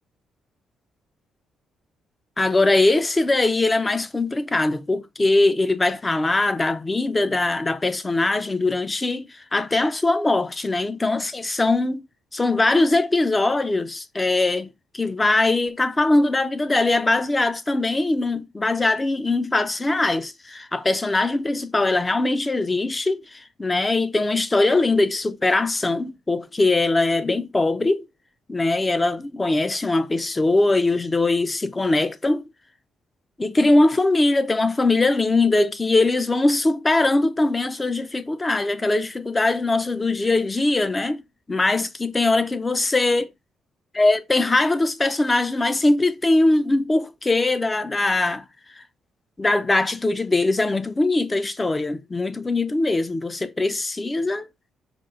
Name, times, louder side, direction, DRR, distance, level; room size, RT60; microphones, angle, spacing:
voice 1, 2.4-12.1 12.3-28.1 28.5-32.5 33.4-41.2 41.5-43.3 43.9-48.4 48.8-48.9 49.4-54.5, left 2 dB, 20° left, 0.4 m, -21 dB
5.1 x 2.3 x 2.5 m
cardioid pair, 90°, 0 cm